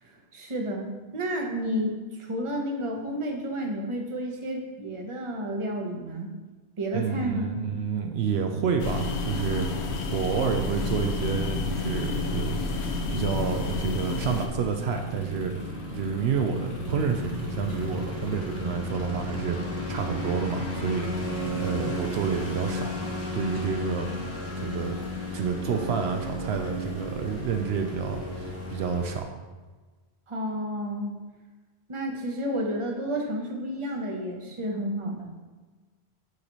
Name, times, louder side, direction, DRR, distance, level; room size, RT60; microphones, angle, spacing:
voice 1, 0.0-6.3 6.8-7.5 30.3-31.1 31.9-35.3, equal, 30° right, 1 dB, 0.9 m, -31 dB
voice 2, 6.9-22.9 23.3-24.1 24.6-25.0 25.3-29.4, right 6 dB, 75° right, 4 dB, 0.8 m, -29 dB
sound 1, 8.8-14.5, left 4 dB, 85° left, 1.0 m, -30 dB
sound 2, 11.2-29.2, left 1 dB, 65° left, 1.6 m, -34 dB
9.5 x 4.0 x 3.0 m, 1.3 s
omnidirectional pair, 1.1 m